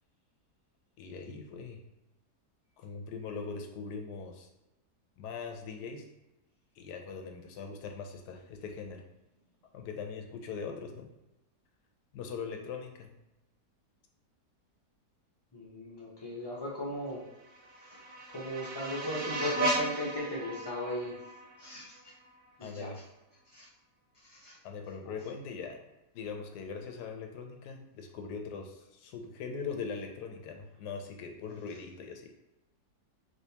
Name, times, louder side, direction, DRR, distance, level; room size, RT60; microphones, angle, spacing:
voice 1, 1.0-1.8 2.8-4.5 5.2-6.1 6.8-9.0 9.7-11.1 12.1-13.1 22.6-23.0 24.6-25.8 26.1-32.3, left 5 dB, 85° left, 3 dB, 1.2 m, -41 dB
voice 2, 15.5-17.2 17.8-18.0 18.3-21.2 21.6-22.1 22.6-23.0 23.5-23.7 24.2-24.6 25.0-25.2 31.7-31.8, equal, 25° left, -6 dB, 0.5 m, -37 dB
sound 1, 17.3-22.4, right 1 dB, 65° right, 0.8 m, -37 dB
3.4 x 3.0 x 2.8 m, 0.97 s
omnidirectional pair, 1.7 m